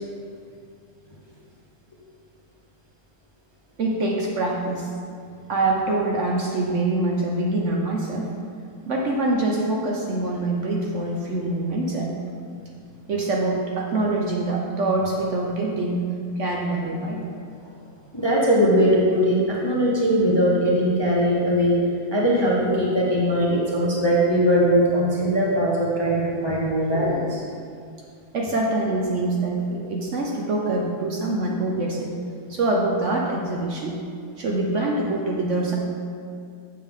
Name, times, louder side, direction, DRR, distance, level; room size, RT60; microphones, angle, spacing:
voice 1, 3.8-4.9 5.5-8.3 8.9-12.2 13.1-16.0 16.4-17.3 28.3-32.1 32.5-34.0 34.4-35.7, right 2 dB, 55° right, -1 dB, 0.9 m, -24 dB
voice 2, 18.1-21.8 22.1-27.4, equal, 25° left, -5 dB, 0.6 m, -20 dB
7.3 x 6.6 x 3.6 m, 2.3 s
omnidirectional pair, 1.7 m